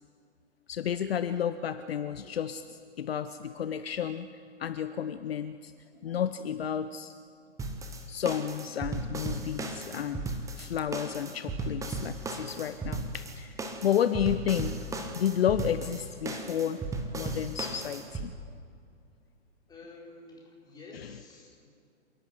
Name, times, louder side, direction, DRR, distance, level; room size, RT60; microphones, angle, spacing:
voice 1, 0.7-4.3 4.6-5.7 6.0-7.1 8.1-14.8 15.1-16.9 17.1-18.3, left 9 dB, 55° left, 12 dB, 0.9 m, -31 dB
sound 1, 7.6-18.3, right 3 dB, 10° right, 1.4 m, -36 dB
voice 2, 19.7-21.7, left 2 dB, 10° left, -2 dB, 4.7 m, -50 dB
27.5 x 11.5 x 8.3 m, 2.3 s
figure-of-eight pair, 125°, 35 cm